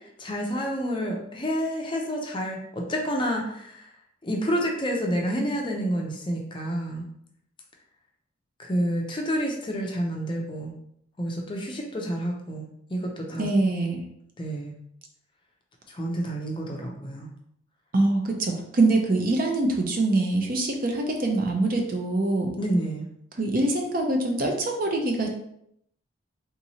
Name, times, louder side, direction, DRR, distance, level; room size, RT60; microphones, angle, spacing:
voice 1, 0.2-3.9 4.2-7.1 8.6-10.7 11.2-13.5 14.4-14.7 15.9-17.3 22.6-23.1, equal, 25° left, 0 dB, 0.5 m, -29 dB
voice 2, 13.3-14.0 17.9-22.5 23.4-25.3, right 2 dB, 45° right, 2 dB, 0.5 m, -24 dB
3.6 x 3.0 x 2.7 m, 0.73 s
head